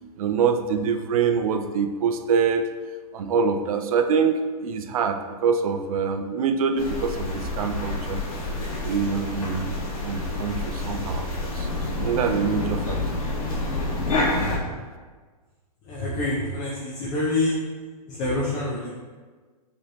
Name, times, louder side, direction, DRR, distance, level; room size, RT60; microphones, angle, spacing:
voice 1, 0.0-2.7 3.1-8.2 8.8-11.7 12.0-13.2, right 6 dB, 60° right, 7 dB, 0.5 m, -25 dB
sound 1, 6.8-14.6, left 2 dB, 60° left, 1.4 m, -28 dB
voice 2, 15.8-17.6 18.1-18.9, left 2 dB, 20° left, -6 dB, 0.7 m, -26 dB
6.1 x 3.1 x 2.8 m, 1.4 s
hypercardioid pair, 160°, 20 cm